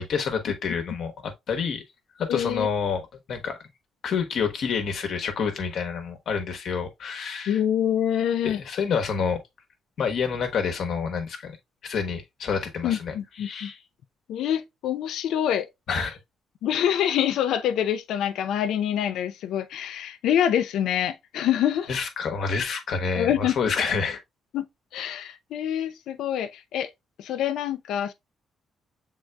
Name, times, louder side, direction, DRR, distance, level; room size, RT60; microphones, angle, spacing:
voice 1, 0.0-1.8 2.2-3.0 3.3-3.6 4.0-7.6 8.4-9.4 10.0-11.5 11.8-13.8 15.9-16.2 21.9-24.2, left 6 dB, 65° left, 1.1 m, -28 dB
voice 2, 2.3-2.7 7.5-8.6 12.8-13.7 14.3-15.7 16.6-21.9 23.2-23.5 24.5-24.6 24.9-26.9 27.2-28.1, left 10 dB, 80° left, 0.5 m, -26 dB
6.4 x 3.7 x 2.2 m
cardioid pair, 90°, 0 cm